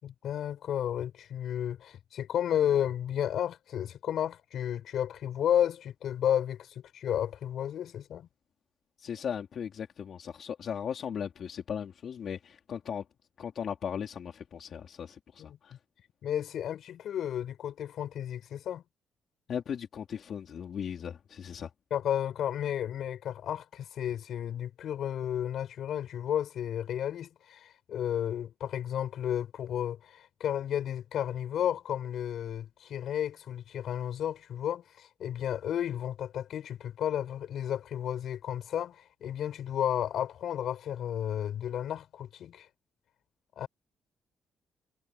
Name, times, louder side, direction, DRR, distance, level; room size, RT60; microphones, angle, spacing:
voice 1, 0.0-8.3 15.5-15.6 16.2-18.8 21.9-42.7 43.6-43.7, left 10 dB, 65° left, 5.9 m, -32 dB
voice 2, 9.0-13.0 13.4-15.8 19.5-21.7, left 8 dB, 50° left, 3.8 m, -37 dB
cardioid pair, 155°, 0 cm